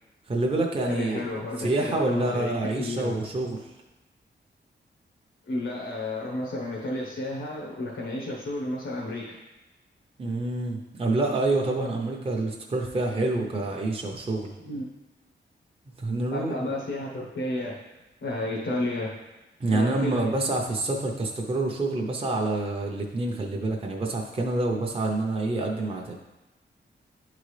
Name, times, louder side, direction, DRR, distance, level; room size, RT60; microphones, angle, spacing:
voice 1, 0.3-1.2 1.6-3.6 10.2-14.5 16.0-16.7 19.6-26.1, right 2 dB, 30° right, 0 dB, 0.7 m, -27 dB
voice 2, 0.9-3.2 5.5-9.4 14.6-14.8 16.3-17.8 18.2-19.2 19.7-20.3, left 2 dB, 90° left, -4 dB, 1.2 m, -32 dB
11.0 x 3.8 x 3.3 m, 1.1 s
wide cardioid pair, 150°, 19 cm